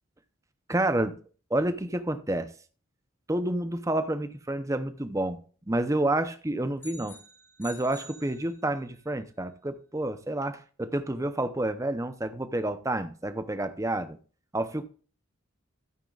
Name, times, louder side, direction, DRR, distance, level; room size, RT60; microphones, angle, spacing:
voice 1, 0.7-1.1 1.5-2.5 3.3-5.4 5.7-7.2 7.6-14.2 14.5-14.9, right 1 dB, 15° right, 0.7 m, -29 dB
sound 1, 6.8-9.0, left 1 dB, 10° left, 1.9 m, -49 dB
12.5 x 9.3 x 2.4 m
head